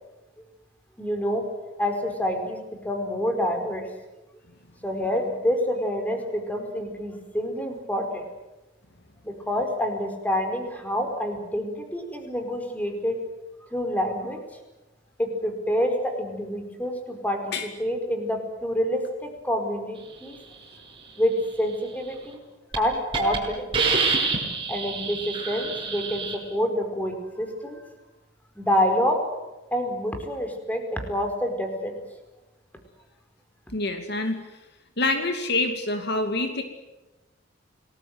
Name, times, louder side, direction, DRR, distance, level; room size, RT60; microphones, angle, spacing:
voice 1, 1.0-1.4 1.8-3.9 4.8-8.3 9.2-13.2 13.7-14.4 15.2-20.4 21.2-22.4 22.7-23.7 24.7-27.8 28.5-29.2 29.7-32.0, equal, 10° left, 4 dB, 4.8 m, -27 dB
Hiss, 22.1-22.4 22.7-22.8 23.1-23.4 23.7-26.3, right 4 dB, 25° right, 7.7 m, -26 dB
voice 2, 33.7-34.4 35.0-36.6, left 2 dB, 60° left, 6 dB, 2.5 m, -26 dB
29.5 x 20.0 x 7.9 m, 1.0 s
head